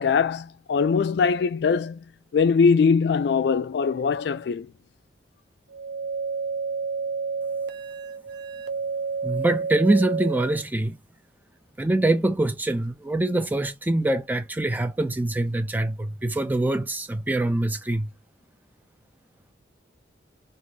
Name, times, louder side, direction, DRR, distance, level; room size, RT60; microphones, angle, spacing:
voice 1, 0.0-2.0 2.3-4.7, left 5 dB, 65° left, 0.3 m, -21 dB
sound 1, 5.7-10.6, right 5 dB, 65° right, 0.5 m, -30 dB
voice 2, 9.2-11.0 11.8-18.1, right 2 dB, 10° right, 0.4 m, -24 dB
2.6 x 2.5 x 3.9 m
head